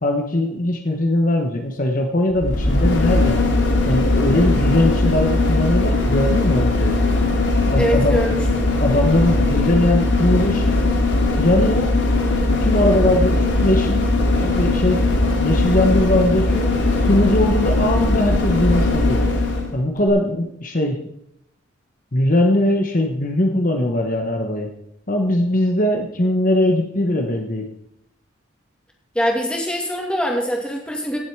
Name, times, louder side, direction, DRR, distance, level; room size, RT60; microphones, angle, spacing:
voice 1, 0.0-3.4 3.9-7.0 7.7-8.2 8.8-10.9 11.4-11.9 12.6-16.7 17.1-19.2 19.7-21.0 22.1-24.7 25.1-27.7, left 1 dB, 45° left, 3 dB, 1.3 m, -20 dB
sound 1, 2.3-19.7 20.1-20.2, left 2 dB, 70° left, 2.5 m, -19 dB
voice 2, 7.7-8.7 29.1-31.2, equal, 5° left, 0 dB, 2.4 m, -23 dB
16.5 x 7.9 x 4.8 m, 0.77 s
head